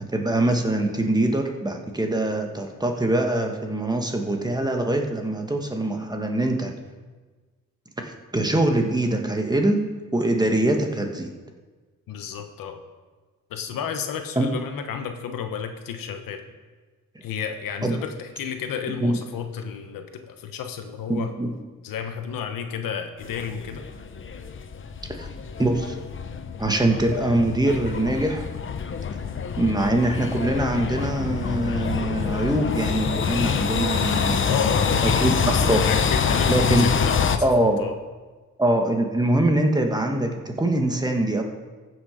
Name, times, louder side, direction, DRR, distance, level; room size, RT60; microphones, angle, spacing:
voice 1, 0.0-6.7 8.0-9.8 10.1-11.3 14.3-14.5 17.1-17.2 17.8-18.0 19.0-19.2 21.1-21.5 25.1-25.3 25.6-26.0 26.6-28.5 29.6-34.6 35.0-35.8 36.5-36.9 37.4-37.8 38.6-41.4, right 1 dB, 10° right, 3 dB, 1.3 m, -23 dB
voice 2, 12.1-12.8 13.5-16.4 17.2-21.3 21.8-23.9 34.5-35.2 35.5-37.9, left 7 dB, 85° left, 6 dB, 1.1 m, -32 dB
sound 1, 23.2-37.4, left 6 dB, 40° left, 0.8 m, -26 dB
14.5 x 6.5 x 5.0 m, 1.3 s
cardioid pair, 95°, 33 cm